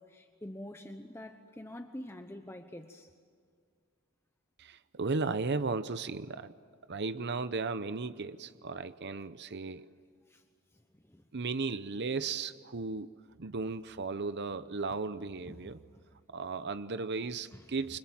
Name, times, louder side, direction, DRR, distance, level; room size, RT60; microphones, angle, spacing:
voice 1, 0.0-3.1 10.3-10.4 11.0-11.2 15.5-16.0 17.5-17.6, left 1 dB, 10° left, 1.0 m, -46 dB
voice 2, 4.6-6.5 6.9-9.9 11.3-13.1 13.4-15.8 16.3-18.0, right 4 dB, 55° right, 0.8 m, -35 dB
29.0 x 25.5 x 7.7 m
head